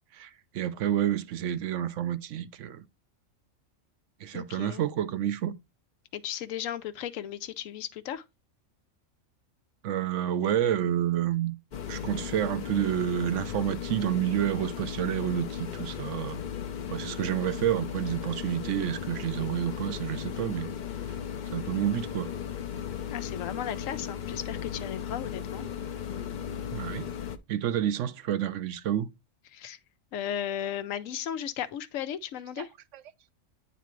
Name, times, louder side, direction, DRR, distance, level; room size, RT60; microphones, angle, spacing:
voice 1, 0.1-2.8 4.2-5.5 9.8-11.5 11.9-16.4 16.9-20.7 21.5-22.3 26.7-27.1 27.5-29.1 32.6-32.7 32.9-33.0, right 10 dB, 75° right, 0.9 m, -29 dB
voice 2, 4.3-4.8 6.1-8.2 23.1-25.6 29.5-29.8 30.1-32.7, left 10 dB, 85° left, 1.0 m, -35 dB
sound 1, 11.7-27.4, left 8 dB, 50° left, 0.6 m, -36 dB
9.2 x 4.1 x 3.0 m
omnidirectional pair, 1.3 m